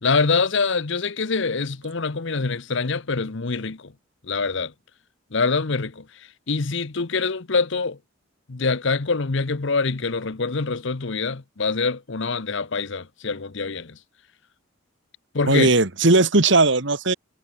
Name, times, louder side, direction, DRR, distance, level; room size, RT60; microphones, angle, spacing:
voice 1, 0.0-3.9 4.3-4.7 5.3-6.0 6.5-8.0 8.5-14.0 15.3-15.7, left 4 dB, 60° left, 0.9 m, -25 dB
voice 2, 15.5-17.1, right 3 dB, 60° right, 1.8 m, -17 dB
head